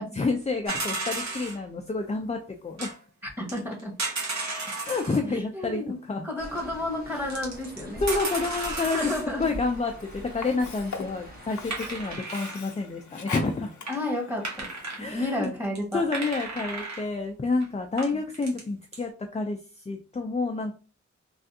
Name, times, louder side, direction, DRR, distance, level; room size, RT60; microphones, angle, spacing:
voice 1, 0.1-2.9 4.8-5.8 6.1-6.3 7.1-7.2 8.0-9.1 9.4-13.7 15.0-15.5 15.9-19.6 19.9-20.7, left 3 dB, 25° left, 4 dB, 0.4 m, -29 dB
sound 1, 0.7-1.6 2.8-2.9 3.5-5.2 6.5-6.6 7.3-9.3 11.7-12.7 13.5-13.6 13.9-14.0 14.4-15.0 15.4-15.5 15.7-17.0 17.6-17.7 18.0-18.6 18.9-19.0, right 3 dB, 65° right, 1.1 m, -33 dB
voice 2, 3.2-3.9 5.2-6.0 6.2-8.0 8.9-9.6 13.9-14.7 15.0-16.0, left 1 dB, 5° right, -1 dB, 1.4 m, -31 dB
sound 2, 6.4-12.2, equal, 30° right, 1.0 m, -43 dB
Sink (filling or washing), 9.3-15.3, left 4 dB, 75° left, 0.6 m, -42 dB
3.3 x 2.4 x 2.7 m, 0.37 s
cardioid pair, 45°, 29 cm